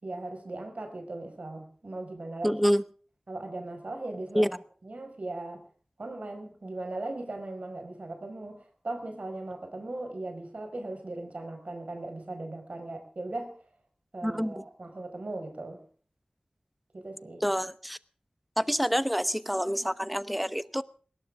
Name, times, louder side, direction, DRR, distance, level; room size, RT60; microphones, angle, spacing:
voice 1, 0.0-2.6 3.3-4.5 4.8-5.6 6.0-13.5 14.1-15.8 16.9-17.4, right 2 dB, 70° right, 5 dB, 5.3 m, -38 dB
voice 2, 2.4-2.8 4.3-4.5 14.2-14.6 17.4-18.0 18.6-20.8, equal, ahead, 16 dB, 0.8 m, -27 dB
20.0 x 18.5 x 3.6 m, 0.41 s
wide cardioid pair, 50°, 2 cm